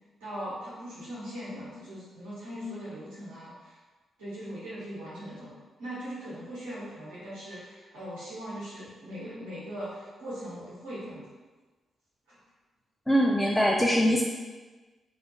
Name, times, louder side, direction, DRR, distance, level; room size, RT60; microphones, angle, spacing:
voice 1, 0.2-3.8 4.2-5.5 5.8-11.2 12.3-12.4, equal, 85° right, -11 dB, 0.8 m, -40 dB
voice 2, 13.1-14.2, equal, 15° left, -2 dB, 0.3 m, -22 dB
2.2 x 2.1 x 2.9 m, 1.3 s
hypercardioid pair, 40°, 0 cm